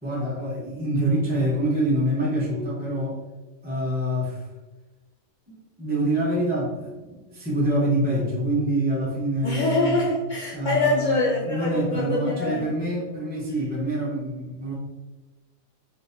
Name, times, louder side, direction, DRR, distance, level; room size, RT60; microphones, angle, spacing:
voice 1, 0.0-3.2 3.6-4.4 5.8-10.0 10.5-14.7, right 1 dB, 10° right, -7 dB, 0.4 m, -26 dB
voice 2, 9.4-12.7, left 2 dB, 90° left, -4 dB, 0.4 m, -24 dB
3.8 x 2.6 x 2.5 m, 1.2 s
omnidirectional pair, 1.4 m